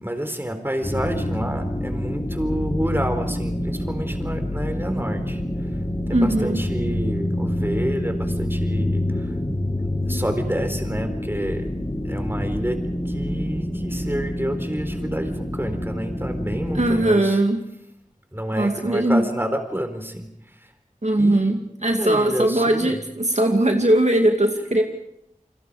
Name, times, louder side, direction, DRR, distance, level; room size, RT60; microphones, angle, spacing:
voice 1, 0.0-5.4 6.1-9.3 10.1-11.7 12.0-12.8 13.1-17.4 18.3-20.3 21.2-21.5 21.9-23.0, equal, 15° right, 6 dB, 4.0 m, -29 dB
sound 1, 0.8-16.9, left 1 dB, 30° left, 7.0 m, -27 dB
voice 2, 6.1-6.6 16.7-17.6 18.6-19.2 21.0-24.8, right 1 dB, 60° right, 3 dB, 2.3 m, -20 dB
29.0 x 25.5 x 5.0 m, 0.80 s
wide cardioid pair, 45°, 13 cm